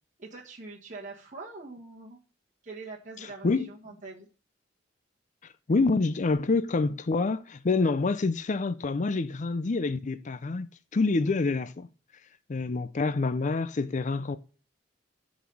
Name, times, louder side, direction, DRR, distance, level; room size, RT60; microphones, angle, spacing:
voice 1, 0.2-2.2 2.6-4.3, right 3 dB, 40° right, 1.5 m, -43 dB
voice 2, 3.2-3.7 5.4-10.7 10.9-11.9 12.5-14.4, left 3 dB, 40° left, 0.5 m, -27 dB
9.5 x 4.1 x 6.9 m
head